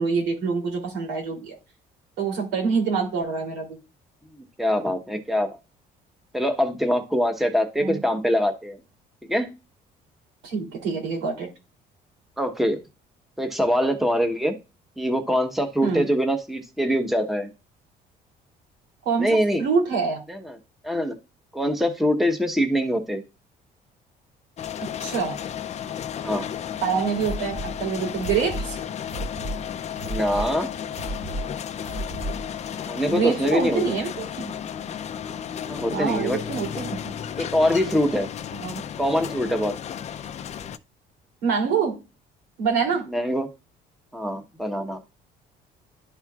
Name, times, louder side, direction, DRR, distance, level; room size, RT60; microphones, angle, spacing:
voice 1, 0.0-1.5 2.2-3.8 7.8-8.0 10.4-11.5 15.8-16.1 19.0-20.2 24.8-25.4 26.8-28.8 33.0-34.5 35.9-37.1 38.6-38.8 41.4-42.0 42.6-43.1, right 5 dB, 90° right, 1 dB, 3.0 m, -26 dB
voice 2, 4.6-5.5 6.3-8.8 9.3-9.5 12.4-12.8 13.4-14.6 15.0-17.5 19.2-19.6 20.3-20.6 20.8-21.1 21.5-23.2 26.2-26.5 30.0-30.7 32.9-33.9 35.7-36.4 37.4-38.3 39.0-39.7 43.1-43.5 44.1-45.0, equal, ahead, 5 dB, 1.0 m, -23 dB
sound 1, 24.6-40.8, left 9 dB, 40° left, 0.5 m, -33 dB
sound 2, 27.1-32.5, right 1 dB, 50° right, 2.7 m, -35 dB
11.5 x 4.4 x 2.4 m, 0.28 s
cardioid pair, 110°, 17 cm